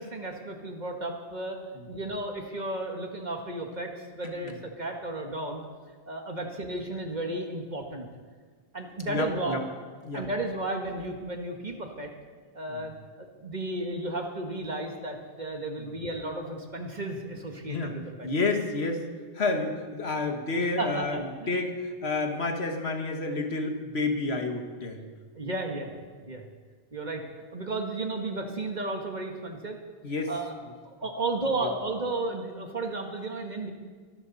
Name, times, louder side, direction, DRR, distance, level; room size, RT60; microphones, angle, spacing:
voice 1, 0.0-1.6 1.9-5.6 6.1-8.1 8.7-9.6 10.1-12.1 12.5-18.3 20.8-21.6 25.4-26.0 26.3-26.4 26.9-27.2 27.5-29.8 30.3-30.5 30.8-33.7, right 2 dB, 45° right, 3 dB, 1.7 m, -33 dB
voice 2, 9.1-9.6 10.0-10.3 12.7-12.9 15.8-15.9 17.6-18.0 18.2-19.0 19.3-25.1 30.0-30.3 31.6-31.7, left 3 dB, 75° left, 4 dB, 1.8 m, -30 dB
23.0 x 12.5 x 4.1 m, 1.5 s
omnidirectional pair, 1.1 m